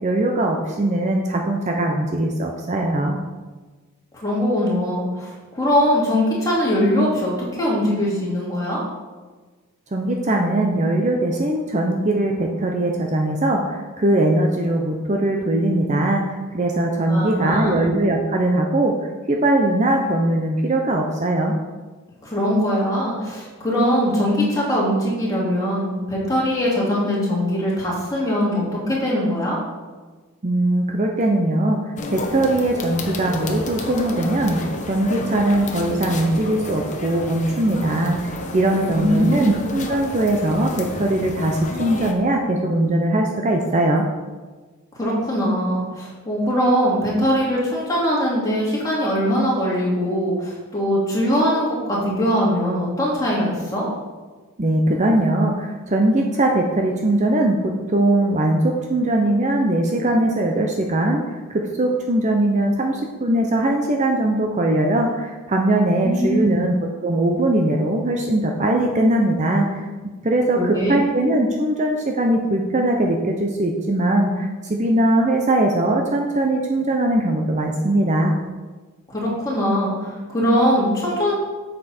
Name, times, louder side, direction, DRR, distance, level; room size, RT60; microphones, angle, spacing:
voice 1, 0.0-3.2 9.9-18.9 19.3-21.5 30.4-31.8 32.1-34.6 34.9-44.0 54.6-66.7 67.0-69.9 70.2-78.3, right 1 dB, 35° right, 1 dB, 0.7 m, -20 dB
voice 2, 4.2-8.8 17.1-17.9 22.2-29.6 38.9-39.5 45.0-53.9 66.0-66.6 70.5-70.9 79.1-81.3, equal, 15° left, -6 dB, 2.7 m, -21 dB
sound 1, 32.0-42.1, left 2 dB, 35° left, 0.9 m, -31 dB
8.3 x 6.7 x 4.3 m, 1.3 s
head